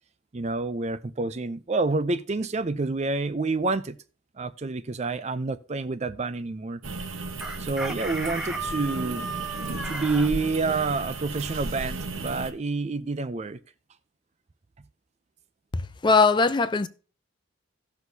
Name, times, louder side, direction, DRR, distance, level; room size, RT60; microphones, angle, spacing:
voice 1, 0.3-4.0 4.4-6.8 7.6-9.4 9.8-13.6, right 3 dB, 35° right, 0.4 m, -28 dB
sound 1, 6.8-12.5, right 3 dB, 75° right, 1.0 m, -35 dB
Chicken rooster, 7.4-10.3, right 2 dB, 5° right, 0.8 m, -35 dB
voice 2, 15.7-16.9, left 4 dB, 20° left, 0.4 m, -21 dB
17.0 x 6.3 x 2.7 m
head